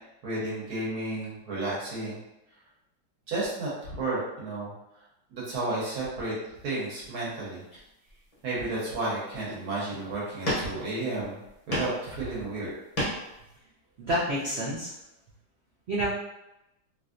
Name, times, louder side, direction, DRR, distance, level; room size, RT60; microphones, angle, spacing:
voice 1, 0.2-2.2 3.3-4.7 5.3-6.3 6.6-7.6 8.4-11.4 11.7-12.7, right 2 dB, 60° right, -6 dB, 1.5 m, -32 dB
sound 1, 7.0-7.2 7.7-8.4 8.9-9.0 9.4-9.8 10.4-11.1 11.4-12.1 12.4-13.4, equal, 35° left, 0.5 m, -33 dB
voice 2, 14.0-14.9 15.9-16.1, equal, 75° right, -7 dB, 0.5 m, -28 dB
3.1 x 2.6 x 2.5 m, 0.89 s
omnidirectional pair, 1.9 m